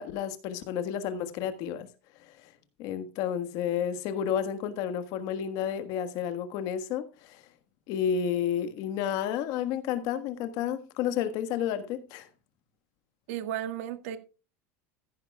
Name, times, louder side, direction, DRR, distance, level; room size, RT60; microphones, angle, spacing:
voice 1, 0.0-1.9 2.4-2.5 2.8-7.4 7.9-12.3, left 9 dB, 55° left, 1.4 m, -31 dB
voice 2, 13.3-14.2, right 11 dB, 75° right, 1.6 m, -34 dB
14.5 x 10.5 x 2.3 m
supercardioid pair, 140°, 8 cm